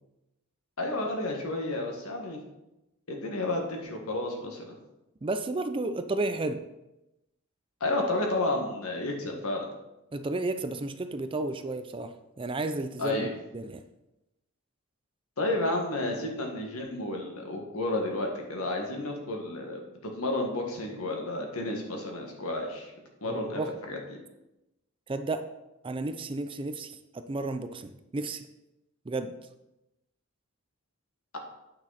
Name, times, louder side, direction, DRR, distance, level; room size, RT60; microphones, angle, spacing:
voice 1, 0.8-2.4 3.1-4.8 7.8-9.6 13.0-13.3 15.4-19.8 20.2-22.9 23.2-23.6 23.9-24.2, left 2 dB, 75° left, 1 dB, 1.7 m, -31 dB
voice 2, 5.2-6.6 10.1-13.8 23.3-23.7 25.1-25.5 25.8-28.4 29.1-29.3, right 2 dB, 25° right, 9 dB, 0.4 m, -32 dB
8.8 x 6.1 x 4.2 m, 0.94 s
head